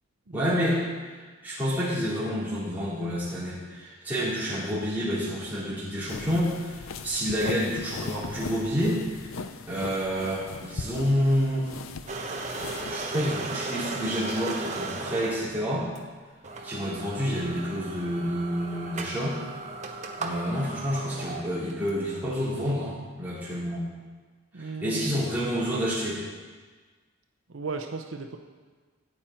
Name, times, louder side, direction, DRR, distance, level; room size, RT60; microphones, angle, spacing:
voice 1, 0.3-0.8 1.1-9.4 9.7-11.7 12.9-15.9 16.6-19.4 20.2-23.9 24.6-26.2, equal, 10° right, -10 dB, 4.1 m, -29 dB
sound 1, 6.1-13.3, left 4 dB, 85° left, 0.6 m, -39 dB
sound 2, 12.1-15.5 15.9-16.0 16.4-21.9, right 3 dB, 35° right, 1.1 m, -36 dB
voice 2, 24.5-25.2 27.5-28.4, right 4 dB, 75° right, 5 dB, 0.8 m, -36 dB
15.0 x 9.1 x 4.4 m, 1.4 s
head